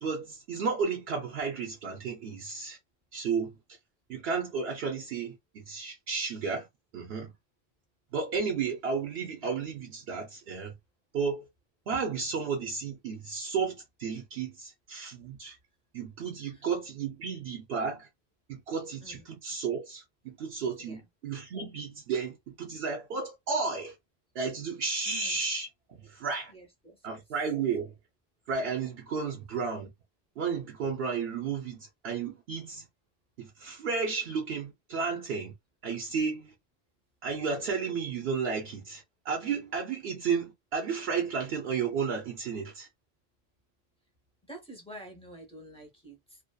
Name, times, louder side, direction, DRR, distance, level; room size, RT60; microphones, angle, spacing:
voice 1, 0.0-2.8 3.1-3.5 4.1-6.7 6.9-7.3 8.1-10.7 11.1-11.5 11.9-15.6 15.9-18.1 18.5-24.0 24.3-25.7 26.0-26.5 27.0-27.9 28.5-29.9 30.4-32.9 33.4-35.5 35.8-36.5 37.2-42.9, right 5 dB, 75° right, 0.9 m, -33 dB
voice 2, 25.0-25.4 26.5-27.2 29.2-29.3 44.5-46.4, equal, 5° left, 0.7 m, -48 dB
2.6 x 2.2 x 2.2 m
omnidirectional pair, 1.1 m